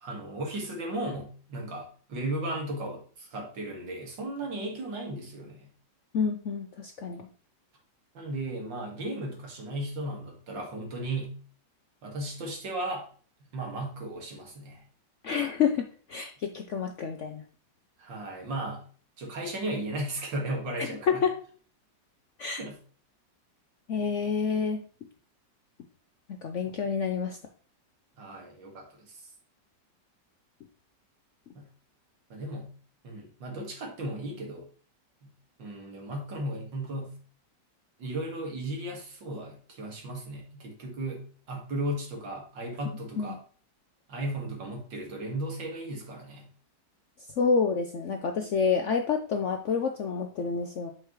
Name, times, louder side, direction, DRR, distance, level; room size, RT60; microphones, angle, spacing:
voice 1, 0.0-5.7 8.1-11.4 12.0-13.0 13.5-14.8 18.0-18.8 19.2-21.2 22.6-22.8 26.6-26.8 28.2-29.2 31.5-31.7 32.3-32.7 33.0-34.7 35.2-35.3 35.6-37.1 38.0-43.4 44.1-46.5, right 1 dB, 85° right, 0 dB, 2.6 m, -35 dB
voice 2, 6.1-7.3 15.2-17.4 20.8-21.3 22.4-22.6 23.9-24.8 26.4-27.4 43.2-43.4 47.4-50.9, left 5 dB, 65° left, 5 dB, 0.7 m, -28 dB
8.0 x 5.8 x 3.1 m, 0.42 s
omnidirectional pair, 2.0 m